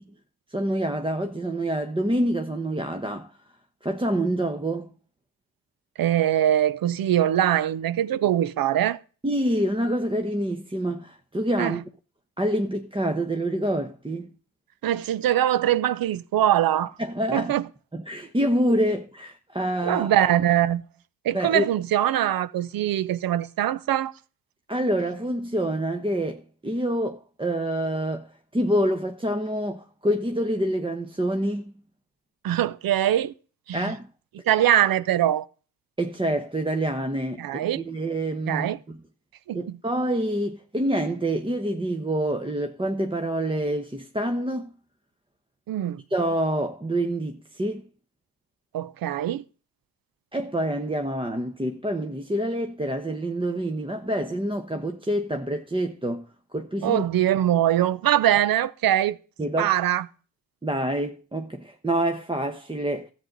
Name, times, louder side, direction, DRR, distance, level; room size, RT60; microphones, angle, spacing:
voice 1, 0.5-3.3 3.8-4.9 9.2-11.9 12.4-14.3 17.0-17.5 17.9-20.3 21.3-21.6 24.7-28.3 28.5-31.7 33.7-34.1 36.0-39.0 39.5-44.7 46.1-47.8 50.3-56.3 56.5-57.0 59.4-59.7 60.6-63.1, right 1 dB, 15° right, 1.0 m, -27 dB
voice 2, 6.0-9.0 11.6-11.8 14.8-16.9 17.3-17.6 19.8-20.8 21.2-24.1 32.4-33.3 33.7-33.9 34.5-35.4 37.4-37.8 38.5-38.8 39.5-39.8 45.7-46.0 48.7-49.4 56.8-59.2 59.6-60.0, right 11 dB, 60° right, 0.7 m, -22 dB
13.0 x 7.8 x 4.0 m
supercardioid pair, 65°, 40 cm